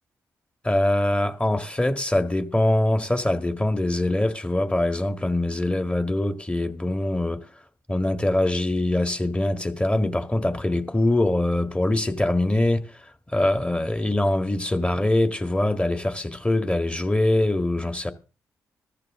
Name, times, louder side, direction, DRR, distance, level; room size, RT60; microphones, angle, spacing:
voice 1, 0.6-7.5 7.9-18.1, left 1 dB, 15° left, 1.9 m, -23 dB
14.5 x 13.5 x 3.8 m
supercardioid pair, 55°, 7 cm